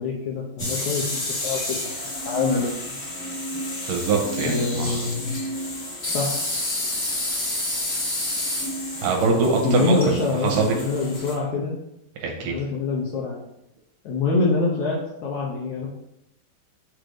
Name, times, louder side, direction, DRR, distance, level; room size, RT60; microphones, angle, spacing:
voice 1, 0.0-1.9 2.3-3.3 4.4-5.4 6.1-6.4 9.6-11.8 12.4-13.4 14.1-15.9, left 3 dB, 70° left, -2 dB, 1.8 m, -25 dB
sound 1, 0.6-11.3, left 1 dB, 40° left, 1.3 m, -29 dB
voice 2, 3.9-4.9 9.0-10.0 10.4-10.7 12.2-12.6, right 4 dB, 75° right, 1 dB, 2.3 m, -23 dB
6.1 x 3.3 x 5.0 m, 0.82 s
omnidirectional pair, 4.2 m